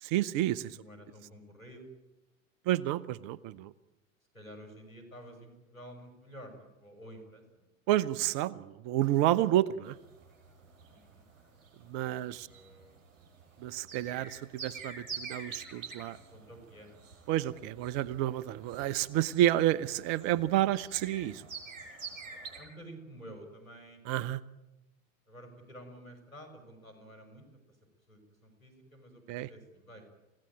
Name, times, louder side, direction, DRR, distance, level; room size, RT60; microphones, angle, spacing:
voice 1, 0.0-0.8 2.7-3.7 7.9-10.0 11.9-12.5 13.6-16.2 17.3-21.4 24.1-24.4 29.3-29.5, right 13 dB, 50° right, 18 dB, 1.0 m, -30 dB
voice 2, 0.7-1.9 4.3-7.6 10.9-11.3 12.1-13.0 16.3-17.0 22.6-24.0 25.3-27.8 28.1-30.0, equal, 90° left, 7 dB, 6.3 m, -51 dB
sound 1, 9.9-22.6, right 5 dB, 65° right, 6.6 m, -47 dB
28.5 x 17.0 x 8.9 m, 1.0 s
figure-of-eight pair, 80°, 40 cm